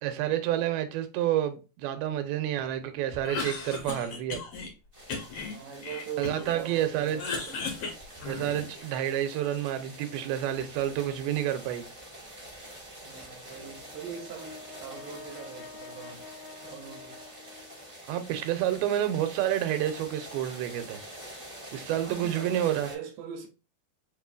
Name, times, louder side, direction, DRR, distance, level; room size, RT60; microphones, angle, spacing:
voice 1, 0.0-4.4 6.2-7.2 8.3-11.8 18.1-21.0 21.7-22.9, right 11 dB, 90° right, 2.5 m, -29 dB
Cough, 3.1-4.7 5.1-6.6 6.9-8.8, left 4 dB, 65° left, 1.5 m, -36 dB
sound 1, 4.9-22.9, right 1 dB, 45° right, 0.4 m, -47 dB
voice 2, 5.5-7.6 13.0-16.3 16.6-17.2 21.9-23.5, right 8 dB, 75° right, 2.3 m, -42 dB
Brass instrument, 13.5-18.0, left 4 dB, 85° left, 2.5 m, -48 dB
6.1 x 3.0 x 2.4 m
omnidirectional pair, 4.3 m